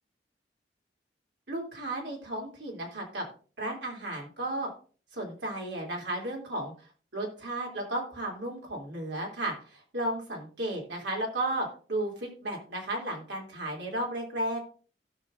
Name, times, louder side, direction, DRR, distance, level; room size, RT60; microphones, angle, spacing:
voice 1, 1.5-3.3 3.6-4.7 5.1-6.7 7.1-14.6, right 1 dB, 85° right, -1 dB, 3.0 m, -34 dB
16.5 x 6.0 x 2.6 m, 0.39 s
head